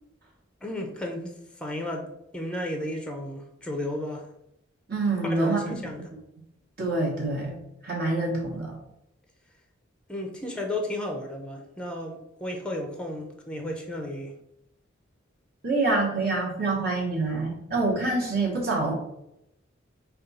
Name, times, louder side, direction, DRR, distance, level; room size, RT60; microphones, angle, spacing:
voice 1, 0.6-1.3 1.6-4.3 5.2-6.0 10.1-14.3, left 1 dB, 5° left, 3 dB, 0.5 m, -33 dB
voice 2, 4.9-5.8 6.1-6.2 6.8-8.8 15.6-18.9, right 2 dB, 50° right, -3 dB, 1.1 m, -26 dB
5.1 x 2.3 x 4.0 m, 0.82 s
head